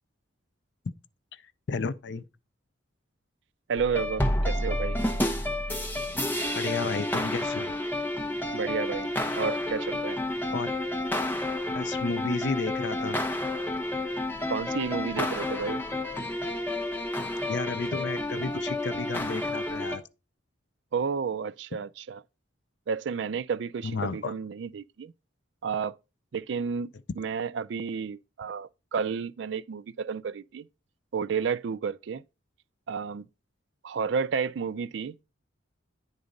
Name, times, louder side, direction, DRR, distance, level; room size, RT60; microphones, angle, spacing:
voice 1, 1.7-2.2 6.6-7.7 10.5-10.7 11.7-13.2 17.5-20.0 23.8-24.3, left 4 dB, 60° left, 0.5 m, -32 dB
voice 2, 3.7-5.0 8.5-10.2 14.5-15.8 20.9-22.2 22.9-25.1 25.6-26.0 26.3-26.9 27.2-30.7 31.1-32.2 32.9-33.3 33.8-35.2, right 6 dB, 60° right, 0.3 m, -31 dB
sound 1, 3.8-20.0, left 1 dB, 10° left, 1.0 m, -30 dB
9.6 x 4.0 x 5.1 m
head